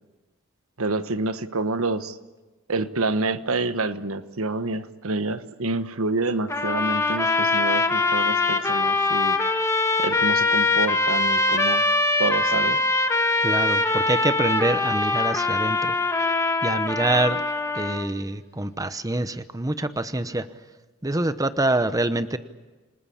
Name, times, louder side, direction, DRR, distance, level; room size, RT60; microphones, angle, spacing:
voice 1, 0.8-2.2 2.7-9.6 10.0-11.8 12.2-12.8, right 3 dB, 85° right, 11 dB, 1.2 m, -28 dB
sound 1, 6.5-18.1, left 3 dB, 15° left, 1.6 m, -23 dB
voice 2, 13.4-16.0 16.6-17.4 17.7-20.5 21.0-22.4, right 2 dB, 15° right, 11 dB, 0.9 m, -25 dB
27.5 x 20.0 x 8.6 m, 1.2 s
head